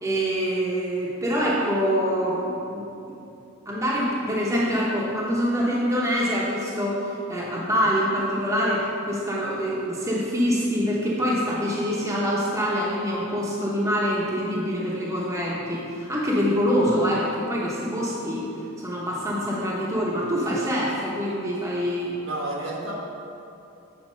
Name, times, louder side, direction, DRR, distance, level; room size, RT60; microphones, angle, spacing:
voice 1, 0.0-3.1 3.7-18.4 18.8-22.2, equal, 15° right, -6 dB, 1.0 m, -25 dB
voice 2, 22.2-22.9, right 1 dB, 65° right, -3 dB, 1.4 m, -31 dB
7.6 x 4.3 x 6.3 m, 2.8 s
head